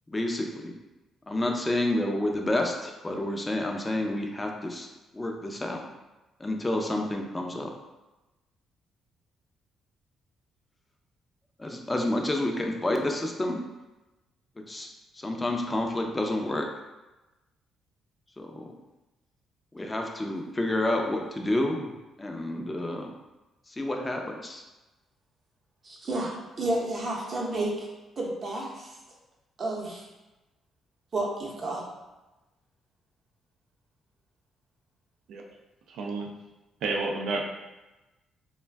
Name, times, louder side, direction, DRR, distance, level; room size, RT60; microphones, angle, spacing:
voice 1, 0.1-0.7 1.3-4.9 5.1-5.8 6.4-7.7 11.6-13.6 14.7-14.9 15.1-16.7 18.4-18.7 19.7-21.9 22.2-23.1 23.7-24.6, left 1 dB, 20° left, 2 dB, 0.4 m, -29 dB
voice 2, 25.8-27.9 28.2-29.0 29.6-30.0 31.1-31.8, right 2 dB, 40° right, -2 dB, 0.7 m, -31 dB
voice 3, 35.9-36.3 36.8-37.4, right 3 dB, 80° right, 1 dB, 0.4 m, -30 dB
2.4 x 2.2 x 3.3 m, 1.1 s
cardioid pair, 90°, 0 cm